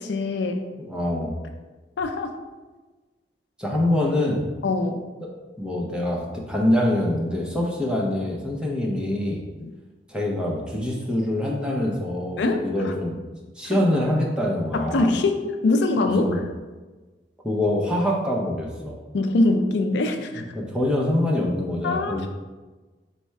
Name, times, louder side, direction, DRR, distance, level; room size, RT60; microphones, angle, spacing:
voice 1, 0.0-0.6 2.0-2.3 4.6-5.0 9.6-9.7 12.4-12.7 13.7-13.8 14.7-16.3 19.1-20.4 21.8-22.3, left 2 dB, 80° left, 5 dB, 0.4 m, -23 dB
voice 2, 0.8-1.4 3.6-4.5 5.2-9.4 10.1-13.2 13.6-15.1 16.2-16.4 17.4-19.0 20.5-22.3, left 1 dB, 5° right, -3 dB, 0.6 m, -25 dB
4.2 x 2.1 x 4.6 m, 1.2 s
head